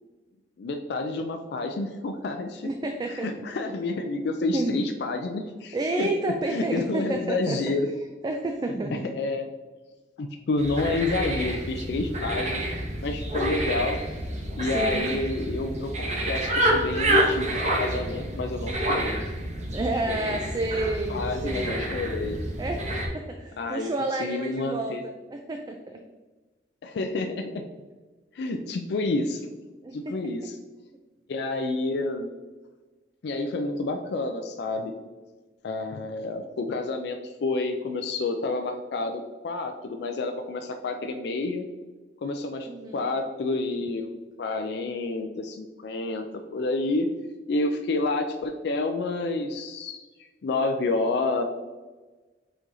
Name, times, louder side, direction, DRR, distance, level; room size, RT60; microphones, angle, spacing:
voice 1, 0.6-2.7 3.1-6.1 6.5-7.9 8.9-9.5 10.2-12.7 13.0-14.0 14.6-19.2 19.8-20.4 21.1-22.4 23.6-25.0 26.8-27.6 28.3-29.5 29.9-30.6 31.3-32.3 33.2-34.9 35.6-41.6 42.2-44.1 44.4-46.3 46.5-47.1 47.5-50.0 50.4-51.4, left 3 dB, 65° left, 5 dB, 0.4 m, -29 dB
voice 2, 2.6-3.3 4.5-4.8 5.7-7.6 8.2-9.1 14.7-15.1 19.7-21.9 22.6-22.9 23.1-26.0 29.8-30.1 42.7-43.0, right 2 dB, 25° right, 4 dB, 0.3 m, -30 dB
sound 1, 10.6-23.1, right 1 dB, 40° right, 0.9 m, -28 dB
4.6 x 4.4 x 2.7 m, 1.3 s
head